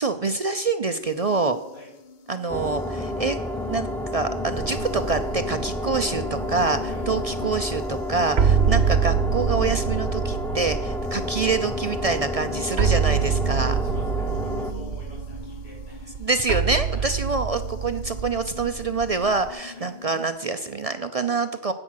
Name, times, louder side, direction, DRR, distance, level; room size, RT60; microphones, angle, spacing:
voice 1, 0.0-1.6 2.3-3.4 3.7-6.8 7.1-13.8 16.2-21.7, right 3 dB, 45° right, 9 dB, 0.6 m, -26 dB
sound 1, 0.9-20.8, left 7 dB, 50° left, 0.8 m, -42 dB
sound 2, 2.5-14.7, equal, ahead, 0.6 m, -30 dB
sound 3, 4.6-19.5, right 7 dB, 80° right, 1.1 m, -27 dB
voice 2, 13.8-16.3 16.9-17.2 19.7-19.9, right 1 dB, 80° left, -3 dB, 5.1 m, -48 dB
9.7 x 8.7 x 6.4 m, 1.0 s
omnidirectional pair, 1.0 m